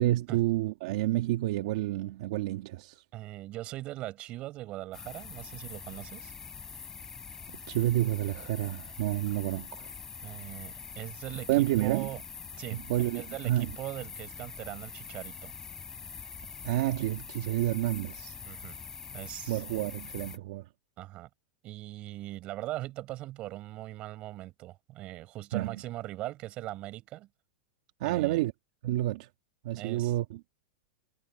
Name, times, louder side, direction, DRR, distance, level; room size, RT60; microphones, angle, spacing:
voice 1, 0.0-3.0 7.7-9.9 11.5-12.1 12.7-13.7 16.6-18.3 19.5-20.6 25.5-25.7 28.0-28.5 28.8-29.3 29.6-30.4, right 15 dB, 55° right, 1.5 m, -29 dB
voice 2, 3.1-6.3 10.2-12.2 12.6-12.8 13.1-15.5 18.5-18.8 19.1-19.6 21.0-21.3 21.6-27.3 28.0-28.4 29.8-30.2, right 16 dB, 30° right, 5.9 m, -40 dB
sound 1, 4.9-20.4, left 6 dB, 15° left, 4.5 m, -44 dB
supercardioid pair, 165°, 4 cm